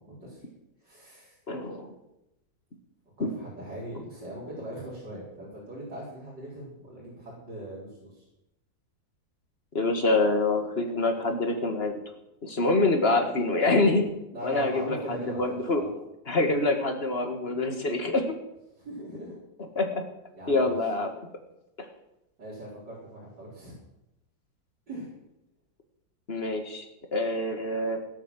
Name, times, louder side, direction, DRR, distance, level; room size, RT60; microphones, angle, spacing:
voice 1, 0.1-0.4 0.8-1.4 3.2-8.2 14.3-15.4 15.7-15.9 18.8-19.4 20.3-20.8 22.4-23.8 24.9-25.1, right 1 dB, 70° right, -7 dB, 4.8 m, -40 dB
voice 2, 1.5-2.0 3.2-3.3 9.7-11.9 12.4-14.1 14.4-15.8 16.3-18.4 19.8-20.0 20.5-21.1 21.8-21.9 26.3-28.0, left 2 dB, 35° left, 5 dB, 2.0 m, -26 dB
17.0 x 8.5 x 7.7 m, 0.89 s
omnidirectional pair, 1.9 m